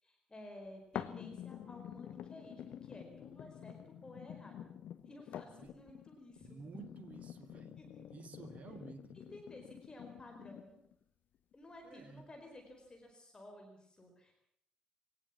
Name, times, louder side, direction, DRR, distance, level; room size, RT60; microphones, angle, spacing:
voice 1, 0.0-4.8 5.0-6.6 7.8-8.0 9.1-10.8 11.5-14.3, left 1 dB, 25° left, 3 dB, 4.8 m, -54 dB
sound 1, 0.9-10.9 11.5-11.6, left 10 dB, 55° left, 1.0 m, -48 dB
voice 2, 6.4-7.8 8.1-9.2 11.8-12.2, right 5 dB, 45° right, 10 dB, 1.9 m, -52 dB
23.0 x 18.0 x 7.4 m, 0.70 s
figure-of-eight pair, 40°, 3 cm